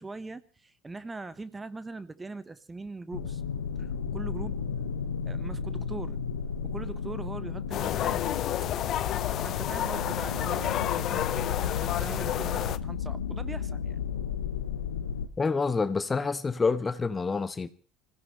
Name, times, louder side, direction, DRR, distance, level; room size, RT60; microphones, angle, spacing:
voice 1, 0.0-3.4 3.8-4.6 5.2-6.2 6.6-8.3 9.3-14.0, right 3 dB, 20° right, 1.3 m, -41 dB
sound 1, 3.1-15.3, left 7 dB, 85° left, 1.1 m, -33 dB
sound 2, 7.7-12.8, left 11 dB, 50° left, 0.8 m, -30 dB
voice 2, 15.4-17.7, left 4 dB, 25° left, 1.1 m, -27 dB
25.5 x 16.5 x 3.3 m
hypercardioid pair, 70°, 0 cm